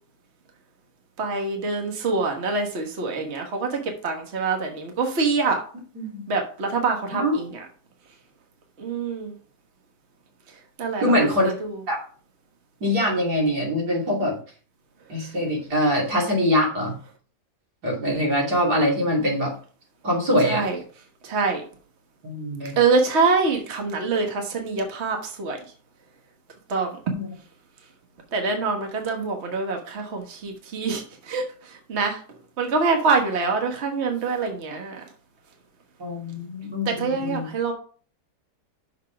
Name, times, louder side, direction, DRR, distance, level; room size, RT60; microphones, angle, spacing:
voice 1, 1.2-5.6 6.3-7.6 8.8-9.3 10.8-11.7 20.4-20.8 21.2-21.6 22.8-25.6 26.7-27.0 28.3-32.2 32.6-35.0 36.8-37.7, right 4 dB, 45° right, 3 dB, 1.5 m, -25 dB
voice 2, 11.0-11.5 11.9-12.0 12.8-14.3 15.1-16.9 17.8-19.5 20.0-20.7 22.2-22.8 27.1-27.3 36.0-37.5, equal, 85° right, -2 dB, 3.3 m, -23 dB
6.3 x 5.5 x 5.8 m, 0.42 s
omnidirectional pair, 1.7 m